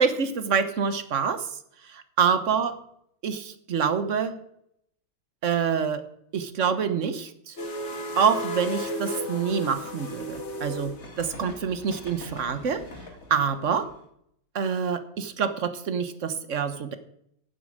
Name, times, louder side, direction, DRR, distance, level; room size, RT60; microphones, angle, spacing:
voice 1, 0.0-1.4 1.9-2.7 3.2-4.4 5.4-6.0 6.3-7.5 8.2-12.8 13.3-13.9 14.5-16.9, right 6 dB, 45° right, 10 dB, 1.1 m, -26 dB
sound 1, 7.6-13.9, left 1 dB, 35° left, 1.8 m, -35 dB
11.5 x 7.7 x 8.7 m, 0.71 s
omnidirectional pair, 2.3 m